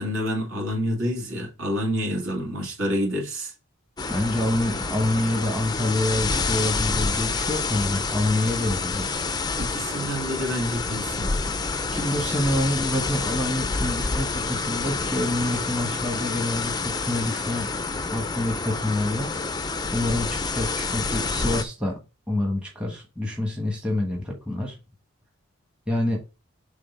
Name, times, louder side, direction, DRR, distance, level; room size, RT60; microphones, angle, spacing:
voice 1, 0.0-3.5 9.6-11.3, equal, 60° right, 2.5 m, -28 dB
sound 1, 4.0-21.6, left 4 dB, 20° left, 0.4 m, -28 dB
voice 2, 4.1-9.3 11.6-17.7 18.1-19.3 19.9-22.0 22.3-24.8 25.9-26.2, left 1 dB, 5° right, 1.2 m, -27 dB
6.3 x 3.8 x 4.5 m
head